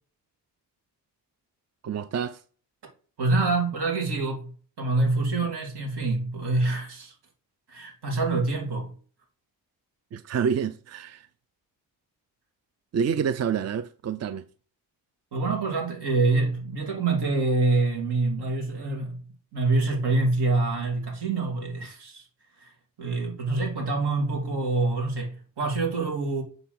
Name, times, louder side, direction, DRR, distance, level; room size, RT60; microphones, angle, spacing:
voice 1, 1.8-2.4 10.1-11.3 12.9-14.4, right 7 dB, 40° right, 0.5 m, -28 dB
voice 2, 3.2-4.5 4.8-7.1 7.7-8.9 15.3-19.2 19.5-22.3 22.6-26.4, right 3 dB, 75° right, 2.9 m, -26 dB
8.1 x 3.9 x 6.0 m
cardioid pair, 60°, 40 cm